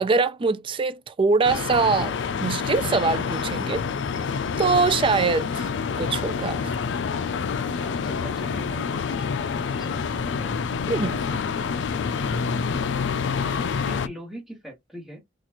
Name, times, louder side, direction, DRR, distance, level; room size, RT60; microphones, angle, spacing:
voice 1, 0.0-2.1 2.4-3.9 4.6-5.7 6.0-6.5 10.9-11.2, right 4 dB, 30° right, 0.3 m, -23 dB
sound 1, 1.4-14.1, left 5 dB, 80° left, 0.4 m, -27 dB
voice 2, 7.8-10.0 10.2-10.6 13.8-15.2, equal, ahead, 1.5 m, -42 dB
4.1 x 2.4 x 2.9 m
head